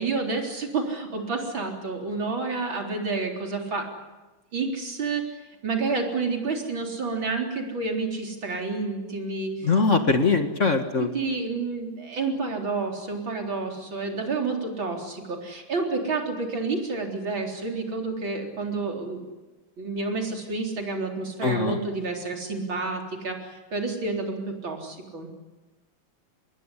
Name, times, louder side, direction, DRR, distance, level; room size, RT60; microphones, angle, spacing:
voice 1, 0.0-3.9 4.5-5.2 5.6-9.8 11.0-19.2 19.8-25.4, right 3 dB, 70° right, 2 dB, 4.7 m, -29 dB
voice 2, 9.6-11.1 21.4-21.8, left 4 dB, 40° left, 7 dB, 1.9 m, -22 dB
26.0 x 21.0 x 10.0 m, 1.2 s
omnidirectional pair, 2.2 m